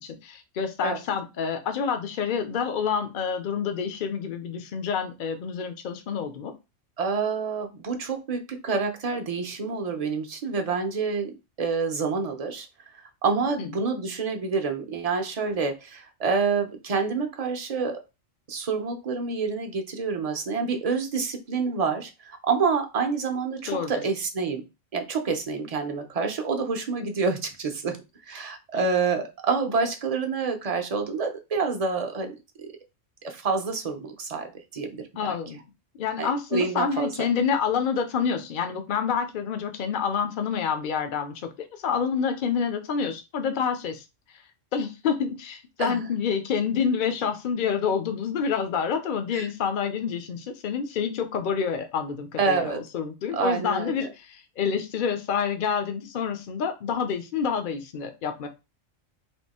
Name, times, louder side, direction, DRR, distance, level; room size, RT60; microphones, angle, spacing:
voice 1, 0.0-6.5 13.6-13.7 23.7-23.9 35.2-35.6 36.0-44.0 44.7-58.5, left 6 dB, 50° left, 7 dB, 0.7 m, -28 dB
voice 2, 7.0-11.3 11.6-12.7 13.2-18.0 18.5-24.6 24.9-28.0 28.3-32.7 33.2-35.1 36.2-37.3 45.8-46.0 49.3-49.4 52.4-52.8 53.3-54.1, right 5 dB, 35° right, 5 dB, 0.6 m, -27 dB
3.6 x 2.7 x 4.1 m, 0.26 s
omnidirectional pair, 1.3 m